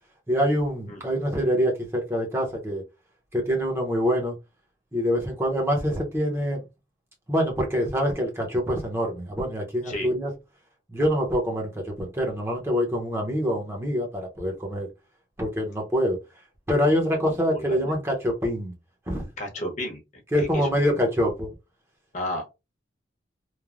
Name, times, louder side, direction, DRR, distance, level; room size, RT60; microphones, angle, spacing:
voice 1, 0.3-2.8 3.3-4.3 4.9-6.6 7.3-10.3 10.9-14.9 15.4-16.2 16.7-18.7 19.1-19.2 20.3-21.5, equal, 15° right, 0.7 m, -25 dB
voice 2, 17.2-17.9 19.4-20.0 20.4-21.0 22.1-22.5, left 1 dB, 40° left, 0.8 m, -33 dB
3.2 x 2.0 x 2.4 m
head